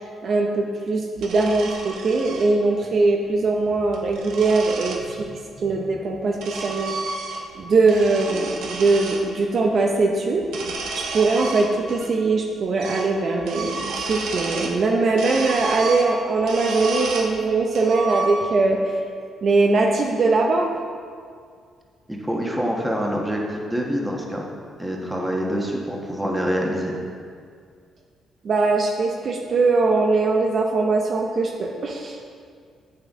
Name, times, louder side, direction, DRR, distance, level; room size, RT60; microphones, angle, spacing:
voice 1, 0.2-5.3 5.6-7.0 7.5-10.4 10.9-19.0 19.4-20.7 28.4-32.2, right 3 dB, 55° right, 1 dB, 0.7 m, -21 dB
sound 1, 1.2-2.5 3.7-5.0 5.9-7.6 7.8-9.2 10.4-12.1 12.4-12.5 12.8-13.1 13.4-14.8 15.2-17.3 17.7-18.7, right 3 dB, 80° right, 0.9 m, -31 dB
voice 2, 22.1-24.5 24.8-26.9, equal, 10° right, -1 dB, 1.2 m, -26 dB
8.1 x 6.4 x 3.6 m, 2.1 s
cardioid pair, 90°, 0 cm